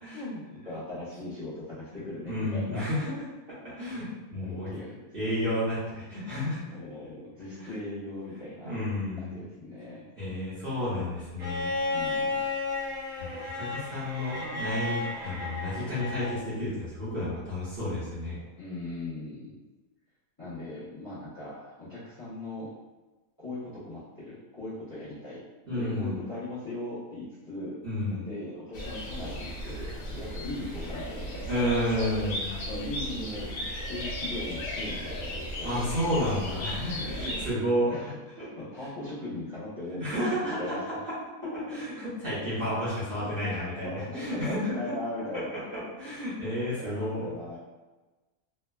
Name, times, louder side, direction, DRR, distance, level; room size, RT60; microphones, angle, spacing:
voice 1, 0.1-2.8 4.4-5.3 6.6-8.8 9.2-10.0 11.9-12.5 13.6-13.7 18.6-19.6 20.4-22.7 23.4-25.4 25.7-27.8 28.1-31.8 32.7-36.2 36.9-37.4 37.8-40.8 41.4-41.8 43.4-45.5 46.8-47.6, left 2 dB, 15° left, -11 dB, 0.8 m, -39 dB
voice 2, 2.3-3.1 3.6-4.7 5.1-6.8 7.6-7.7 8.3-9.4 10.2-11.7 13.2-13.3 13.5-18.4 25.7-26.2 27.8-28.2 31.5-32.5 35.6-37.9 38.4-38.5 40.0-40.7 41.0-41.1 41.7-44.7 45.3-45.6 46.0-47.3, left 1 dB, 45° right, -12 dB, 0.9 m, -31 dB
Bowed string instrument, 11.4-16.4 17.9-18.0, left 3 dB, 75° right, 1.2 m, -33 dB
sound 1, 28.7-37.5, equal, 90° left, 1.1 m, -36 dB
3.1 x 2.1 x 2.2 m, 1.2 s
omnidirectional pair, 1.6 m